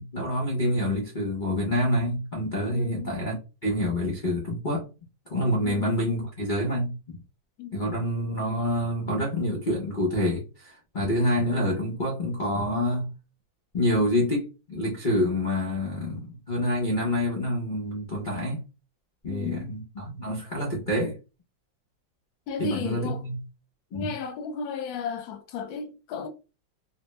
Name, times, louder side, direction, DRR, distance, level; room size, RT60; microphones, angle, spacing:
voice 1, 0.0-3.4 3.6-4.9 5.3-7.2 7.7-13.1 13.7-18.6 19.2-21.2 22.6-23.4 23.9-24.1, left 1 dB, 55° left, 0.5 m, -27 dB
voice 2, 2.7-3.2 5.6-6.0 7.6-7.8 19.3-19.7 22.5-23.3 23.9-26.3, left 6 dB, 75° left, 1.4 m, -34 dB
3.2 x 2.2 x 3.0 m
omnidirectional pair, 2.2 m